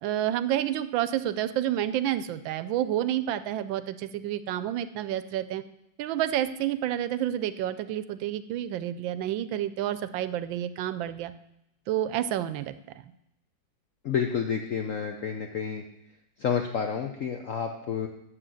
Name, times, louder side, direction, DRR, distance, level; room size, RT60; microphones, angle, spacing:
voice 1, 0.0-5.6 6.0-11.3 11.9-12.7, right 12 dB, 80° right, 13 dB, 1.3 m, -29 dB
voice 2, 14.0-15.8 16.4-18.1, left 7 dB, 70° left, 4 dB, 0.7 m, -29 dB
7.7 x 6.2 x 7.6 m, 0.79 s
omnidirectional pair, 2.2 m